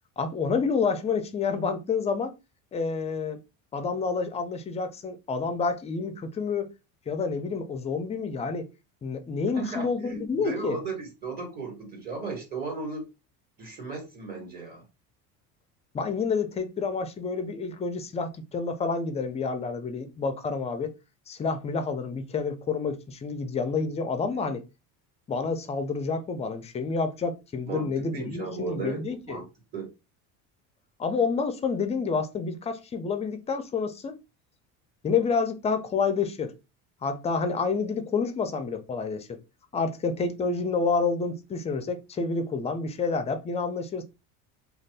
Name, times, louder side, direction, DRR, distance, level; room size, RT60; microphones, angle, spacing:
voice 1, 0.2-2.3 2.7-3.4 3.7-6.7 7.1-8.7 9.0-10.8 15.9-20.9 21.3-24.6 25.3-29.4 31.0-34.2 35.0-36.5 37.0-39.4 39.7-44.0, left 4 dB, 20° left, 0.4 m, -29 dB
voice 2, 9.5-13.0 13.6-14.8 24.2-24.5 27.6-29.0 29.3-29.5 29.7-29.9, right 4 dB, 30° right, 1.5 m, -36 dB
2.6 x 2.3 x 3.2 m
cardioid pair, 135°, 34 cm